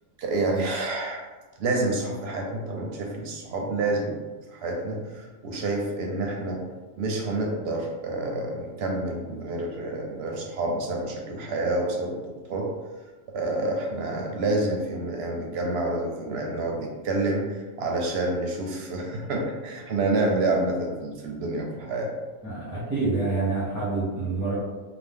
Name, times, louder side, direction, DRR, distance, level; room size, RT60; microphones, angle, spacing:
voice 1, 0.2-1.2 1.6-4.2 4.5-6.6 6.9-12.2 12.5-12.7 13.3-22.1, right 2 dB, 65° right, 0 dB, 0.7 m, -28 dB
voice 2, 22.4-24.6, right 3 dB, 20° right, -9 dB, 0.6 m, -27 dB
2.8 x 2.0 x 3.4 m, 1.3 s
omnidirectional pair, 1.4 m